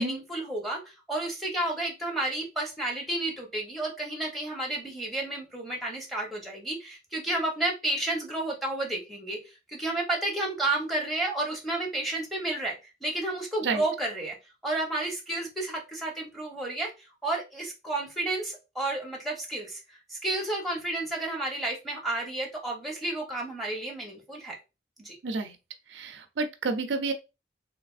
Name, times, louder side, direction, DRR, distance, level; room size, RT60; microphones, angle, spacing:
voice 1, 0.0-12.8 13.0-14.4 14.6-16.9 17.2-24.5 25.0-25.2, right 2 dB, ahead, 0.9 m, -31 dB
voice 2, 25.2-25.6 25.9-27.1, right 3 dB, 80° right, 0.5 m, -29 dB
3.2 x 3.0 x 2.4 m
head